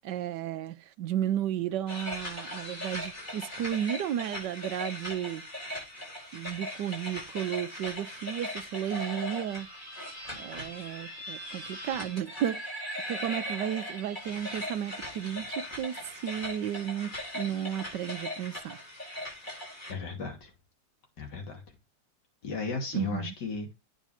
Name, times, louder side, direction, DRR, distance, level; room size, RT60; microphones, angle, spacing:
voice 1, 0.0-5.4 6.3-9.7 10.4-12.6 13.1-15.9 16.2-18.8 22.9-23.3, right 10 dB, 70° right, 1.2 m, -33 dB
sound 1, 1.9-19.9, left 1 dB, 25° left, 4.8 m, -39 dB
voice 2, 19.9-20.5 21.2-21.6 22.4-23.7, left 4 dB, 65° left, 3.2 m, -35 dB
9.2 x 5.2 x 4.9 m
omnidirectional pair, 2.0 m